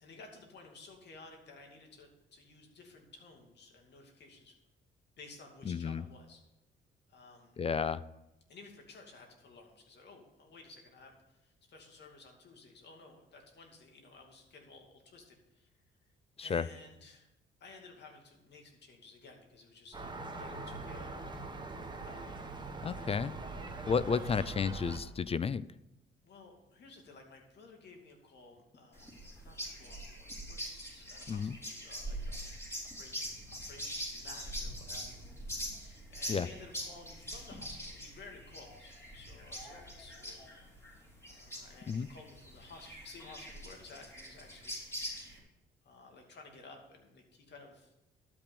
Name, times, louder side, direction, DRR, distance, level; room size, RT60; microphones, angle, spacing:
voice 1, 0.0-4.6 5.2-6.4 7.1-7.6 8.5-15.7 16.4-17.3 17.6-21.2 22.0-22.6 24.2-24.5 26.2-29.1 29.4-32.4 32.9-40.4 41.3-44.8 45.8-47.9, left 3 dB, 60° left, 2 dB, 2.6 m, -55 dB
voice 2, 5.7-6.0 7.6-8.0 16.4-16.7 22.8-23.3 23.9-25.6 31.3-31.5 36.3-36.5 41.9-42.1, left 6 dB, 30° left, 18 dB, 0.4 m, -32 dB
Gull seagull, 19.9-25.0, right 3 dB, 20° right, 1.4 m, -42 dB
sound 1, 28.9-45.4, equal, 15° left, 3.8 m, -43 dB
12.0 x 5.8 x 6.9 m, 0.94 s
cardioid pair, 90°, 20 cm